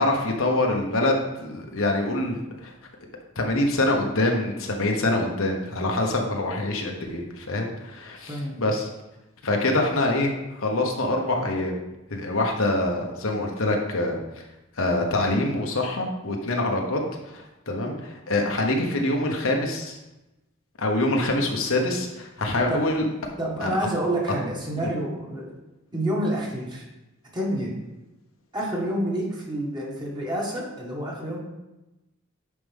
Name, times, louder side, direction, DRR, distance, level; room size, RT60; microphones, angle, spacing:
voice 1, 0.0-2.7 3.4-8.9 9.4-11.7 12.1-14.2 14.8-17.0 17.3-20.0 20.8-23.1 23.6-23.7, left 2 dB, 65° left, 1 dB, 1.1 m, -25 dB
voice 2, 23.4-25.5 25.9-26.8 27.3-27.8 28.5-31.4, right 1 dB, 20° right, -3 dB, 1.9 m, -28 dB
9.8 x 5.1 x 3.6 m, 0.99 s
head